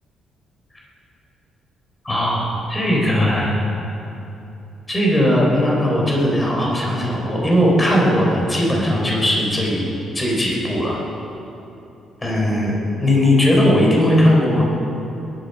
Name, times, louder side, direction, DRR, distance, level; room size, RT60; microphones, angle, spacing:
voice 1, 2.0-3.6 4.9-9.9 10.1-11.0 12.2-14.6, left 1 dB, 15° left, -2 dB, 4.0 m, -18 dB
20.5 x 11.5 x 5.6 m, 2.8 s
cardioid pair, 125°, 0 cm